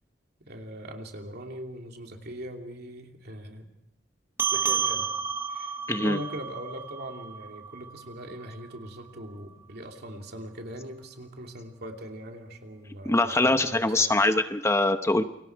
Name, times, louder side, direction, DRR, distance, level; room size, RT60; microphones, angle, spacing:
voice 1, 0.5-3.7 4.5-5.1 5.5-14.2, right 1 dB, 60° right, 3 dB, 2.9 m, -41 dB
sound 1, 4.4-9.2, right 5 dB, 15° right, 1.2 m, -32 dB
voice 2, 5.9-6.2 13.0-15.2, left 2 dB, 15° left, 8 dB, 0.9 m, -23 dB
29.0 x 24.0 x 4.7 m, 0.80 s
head